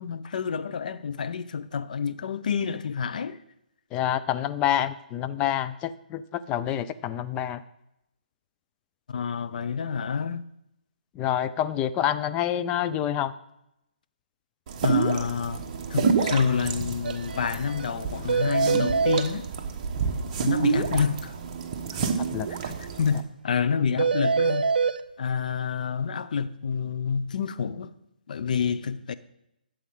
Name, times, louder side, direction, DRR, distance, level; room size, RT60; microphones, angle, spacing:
voice 1, 0.0-3.4 9.1-10.4 14.8-15.6 15.9-19.5 20.4-21.3 21.9-22.0 22.6-24.7 25.2-27.9 28.3-29.1, left 6 dB, 55° left, 0.7 m, -28 dB
voice 2, 3.9-7.6 11.2-13.3 22.3-22.5, left 11 dB, 20° left, 0.4 m, -27 dB
sound 1, 14.7-23.2, right 6 dB, 35° right, 1.2 m, -29 dB
sound 2, 17.0-17.2 17.4-17.5 17.8-17.9 18.3-19.3 24.0-25.0, right 5 dB, 80° right, 0.5 m, -24 dB
12.0 x 7.7 x 3.8 m
hypercardioid pair, 145°, 5 cm